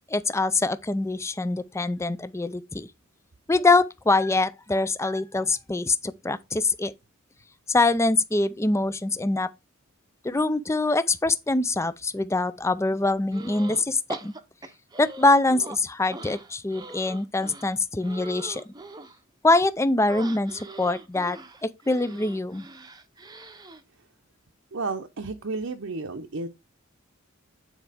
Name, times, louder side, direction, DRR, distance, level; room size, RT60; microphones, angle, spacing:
voice 1, 0.1-2.9 3.5-6.9 7.7-9.5 10.2-14.3 15.0-18.7 19.4-21.4 21.9-22.6, left 2 dB, 15° left, 0.5 m, -24 dB
sound 1, 13.3-13.8 14.1-15.8 16.1-19.2 20.1-23.8, right 2 dB, 20° right, 0.8 m, -42 dB
voice 2, 24.7-26.5, right 3 dB, 70° right, 0.8 m, -32 dB
9.2 x 4.5 x 3.5 m
head